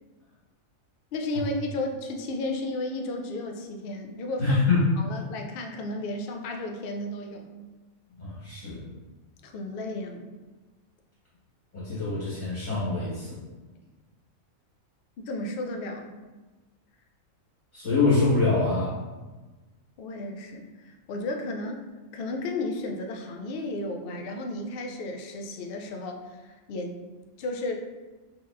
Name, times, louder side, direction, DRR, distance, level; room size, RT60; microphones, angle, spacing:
voice 1, 1.1-4.6 5.0-7.5 9.4-10.3 15.2-16.1 20.0-21.8 22.1-26.9 27.4-27.7, left 2 dB, 70° left, 3 dB, 0.5 m, -33 dB
voice 2, 4.4-4.9 8.2-8.8 11.7-13.4 17.7-19.0, left 3 dB, 30° left, -11 dB, 1.5 m, -25 dB
4.2 x 2.9 x 2.5 m, 1.3 s
omnidirectional pair, 1.4 m